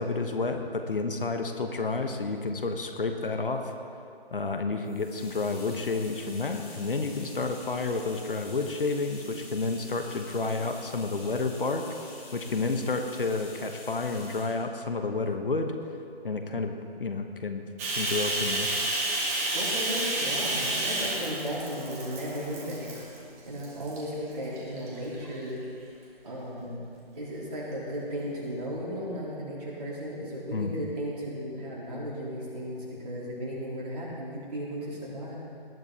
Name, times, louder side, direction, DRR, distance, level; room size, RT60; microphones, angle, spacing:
voice 1, 0.0-3.7 4.3-15.7 16.2-17.6 18.0-18.7 30.5-30.7, left 3 dB, 60° left, 6 dB, 1.2 m, -30 dB
sound 1, 4.8-14.6, left 2 dB, 25° left, 3.6 m, -47 dB
Bathtub (filling or washing), 17.8-23.2 23.6-24.0 24.5-25.4, right 2 dB, 15° right, 1.4 m, -30 dB
voice 2, 19.5-22.9 23.4-25.6 26.2-26.8 27.1-35.4, equal, 40° right, -7 dB, 4.1 m, -35 dB
18.5 x 11.0 x 4.3 m, 2.5 s
figure-of-eight pair, 150°, 31 cm